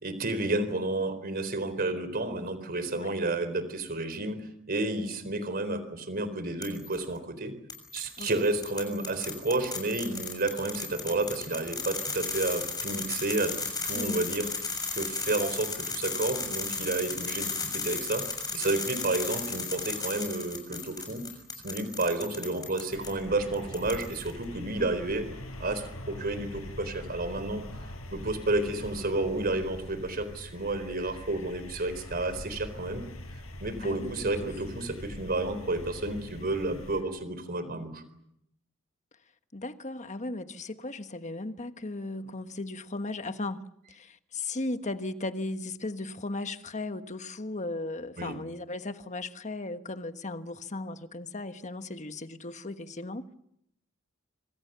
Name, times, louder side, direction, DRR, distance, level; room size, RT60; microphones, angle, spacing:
voice 1, 0.0-4.4 4.7-7.5 7.9-13.5 13.8-14.5 14.9-18.3 18.5-21.2 21.6-25.3 25.6-27.6 28.1-33.1 33.6-38.0 48.2-48.4, right 2 dB, 45° right, 4.2 m, -31 dB
sound 1, 6.6-7.0 7.7-23.1 23.5-24.3, left 4 dB, 20° left, 6.6 m, -35 dB
voice 2, 13.9-14.3 33.8-34.5 39.5-43.6 43.9-53.3, left 2 dB, 35° left, 1.4 m, -36 dB
sound 2, 22.9-37.0, left 1 dB, 75° left, 5.5 m, -43 dB
27.0 x 25.5 x 6.9 m
head